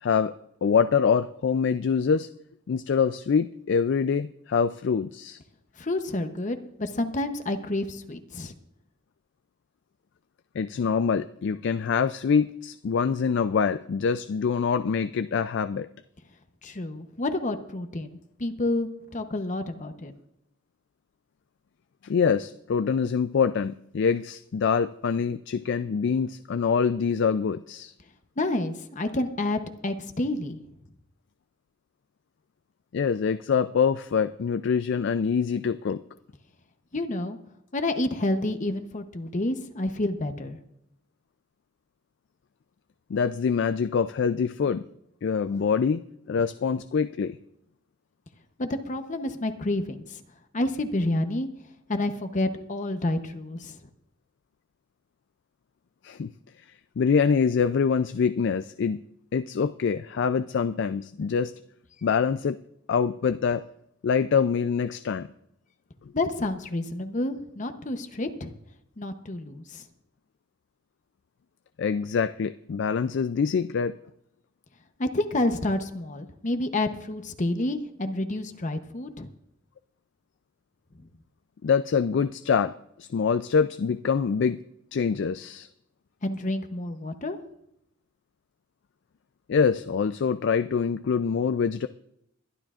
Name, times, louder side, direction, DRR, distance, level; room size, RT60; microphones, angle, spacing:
voice 1, 0.0-0.3 0.6-2.3 2.7-5.4 10.5-15.9 22.0-27.9 32.9-36.0 43.1-44.8 45.2-47.4 56.0-56.3 57.0-59.0 59.3-61.5 62.0-62.6 62.9-63.6 64.0-65.3 71.8-74.0 81.6-82.7 83.0-84.6 84.9-85.7 89.5-91.9, left 6 dB, 60° left, 11 dB, 0.4 m, -25 dB
voice 2, 5.8-8.5 16.6-20.1 28.4-30.6 36.9-37.4 37.7-40.6 48.6-50.2 50.5-51.5 51.9-53.8 66.1-68.5 69.0-69.8 75.0-79.3 86.2-87.4, left 1 dB, 40° left, 8 dB, 0.9 m, -29 dB
22.0 x 11.5 x 2.5 m, 0.78 s
head